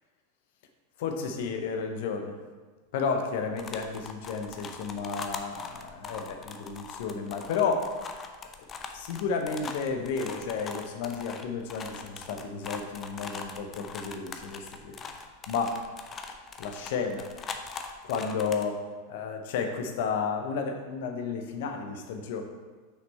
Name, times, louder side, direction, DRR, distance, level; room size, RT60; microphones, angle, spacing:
voice 1, 1.0-2.4 2.9-7.9 8.9-15.0 15.5-15.8 16.6-17.3 18.0-18.8 19.1-22.4, left 5 dB, 60° left, 5 dB, 0.9 m, -32 dB
sound 1, 3.6-18.6, left 5 dB, 30° left, 0.7 m, -41 dB
6.2 x 5.8 x 4.3 m, 1.4 s
figure-of-eight pair, 90°, 0 cm